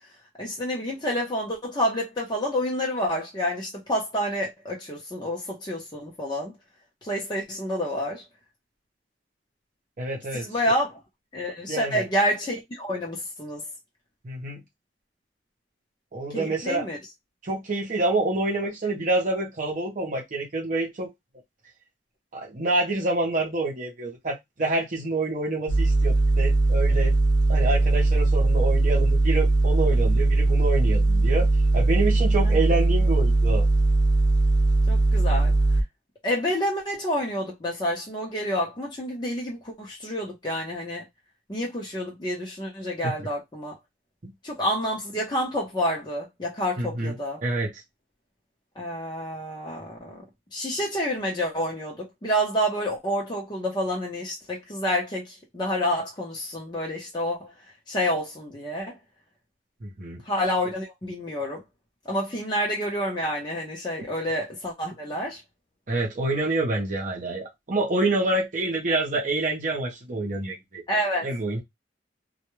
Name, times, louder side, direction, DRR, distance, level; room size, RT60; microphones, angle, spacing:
voice 1, 0.4-6.5 7.0-8.2 10.3-11.0 11.3-13.6 16.3-17.0 32.4-32.5 34.9-35.5 36.2-41.0 41.5-43.7 44.4-47.4 48.8-50.2 50.5-57.5 57.9-59.0 60.2-61.6 62.1-65.4 70.9-71.3, equal, 25° left, 0.7 m, -28 dB
voice 2, 10.0-10.5 11.7-12.0 14.2-14.6 16.1-16.9 17.4-21.1 22.3-27.1 27.5-31.5 31.7-33.7 43.0-43.1 44.2-44.3 46.8-47.1 47.4-47.7 59.8-60.2 65.9-70.8 71.2-71.6, right 2 dB, 45° right, 0.7 m, -27 dB
sound 1, 25.7-35.8, right 2 dB, 90° left, 0.6 m, -20 dB
2.3 x 2.1 x 3.0 m
head